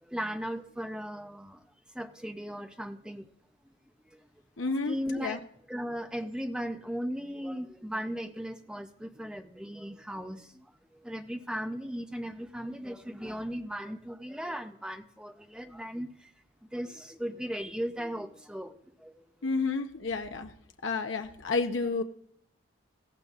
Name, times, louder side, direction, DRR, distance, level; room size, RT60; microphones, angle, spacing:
voice 1, 0.0-1.6 1.9-3.3 4.1-4.2 4.9-5.4 5.7-10.7 11.0-16.3 16.7-18.8 19.0-19.2, equal, 5° right, 7 dB, 0.5 m, -37 dB
voice 2, 4.6-5.4 19.4-20.5 20.8-22.0, left 4 dB, 60° left, 6 dB, 0.7 m, -31 dB
18.0 x 14.0 x 2.4 m, 0.68 s
head